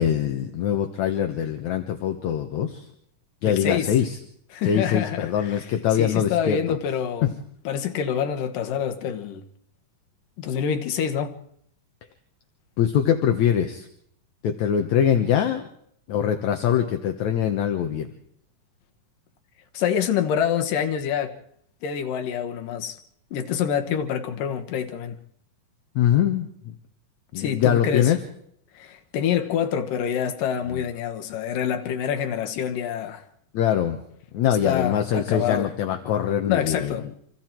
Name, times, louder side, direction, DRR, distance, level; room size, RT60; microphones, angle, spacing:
voice 1, 0.0-2.9 3.4-4.2 4.6-6.8 7.2-7.3 12.8-13.9 14.4-15.7 16.1-18.1 26.0-26.5 27.3-28.2 30.7-30.8 33.5-34.0 34.3-37.0, left 9 dB, 65° left, 2.4 m, -23 dB
voice 2, 3.4-3.9 4.5-5.6 6.0-7.3 7.6-9.4 10.4-11.4 19.7-21.3 21.8-23.0 23.3-25.2 27.4-28.1 28.7-33.2 34.6-35.7 36.5-37.1, left 8 dB, 85° left, 3.0 m, -26 dB
26.5 x 26.0 x 4.5 m
omnidirectional pair, 3.7 m